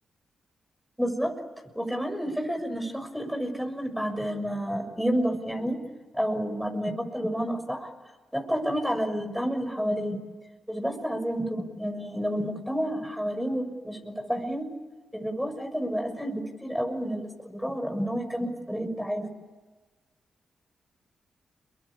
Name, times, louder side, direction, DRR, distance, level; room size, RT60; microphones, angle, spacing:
voice 1, 1.0-1.4 1.7-5.8 6.1-7.9 8.3-10.2 10.7-14.7 15.1-19.3, equal, ahead, 5 dB, 6.4 m, -30 dB
28.5 x 23.0 x 8.6 m, 1.3 s
supercardioid pair, 45°, 0 cm